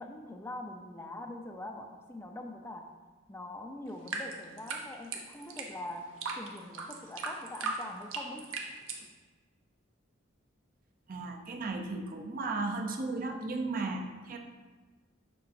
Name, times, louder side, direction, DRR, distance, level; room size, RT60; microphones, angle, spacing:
voice 1, 0.0-2.9 3.3-8.5, left 1 dB, 10° left, 3 dB, 0.4 m, -43 dB
sound 1, 3.9-9.0, right 4 dB, 80° right, 0.8 m, -38 dB
voice 2, 11.1-14.4, right 3 dB, 45° right, 3 dB, 0.5 m, -35 dB
6.8 x 5.6 x 2.6 m, 1.3 s
head